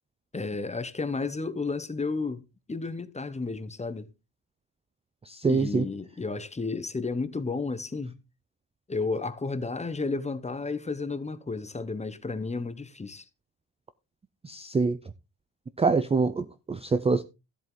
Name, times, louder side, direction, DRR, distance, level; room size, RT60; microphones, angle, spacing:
voice 1, 0.3-4.1 5.5-8.2 8.9-13.2, left 3 dB, 15° left, 0.9 m, -32 dB
voice 2, 5.3-5.9 14.4-15.0 15.8-17.2, right 4 dB, 15° right, 0.4 m, -25 dB
13.5 x 7.8 x 3.8 m
cardioid pair, 130°, 42 cm